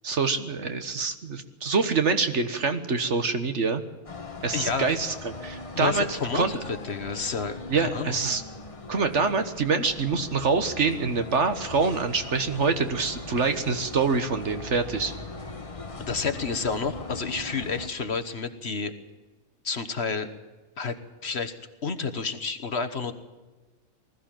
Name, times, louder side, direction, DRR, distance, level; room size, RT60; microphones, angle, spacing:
voice 1, 0.0-3.8 4.4-6.0 6.3-6.6 7.7-8.4 8.9-15.1, right 4 dB, 55° right, 9 dB, 1.6 m, -25 dB
sound 1, 4.1-17.9, left 3 dB, 25° left, 1.1 m, -40 dB
voice 2, 4.5-4.9 5.7-8.2 16.1-18.9 19.6-20.3 20.8-20.9 21.2-21.5 21.8-23.1, left 5 dB, 50° left, 10 dB, 1.4 m, -30 dB
20.0 x 14.5 x 9.0 m, 1.2 s
omnidirectional pair, 1.5 m